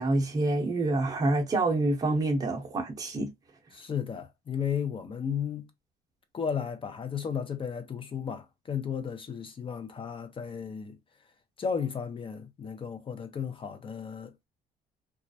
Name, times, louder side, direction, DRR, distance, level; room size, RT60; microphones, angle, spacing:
voice 1, 0.0-3.3, right 2 dB, 20° right, 0.7 m, -27 dB
voice 2, 3.7-5.7 6.3-11.0 11.6-14.3, left 7 dB, 30° left, 0.5 m, -34 dB
2.3 x 2.0 x 2.6 m
cardioid pair, 110°, 17 cm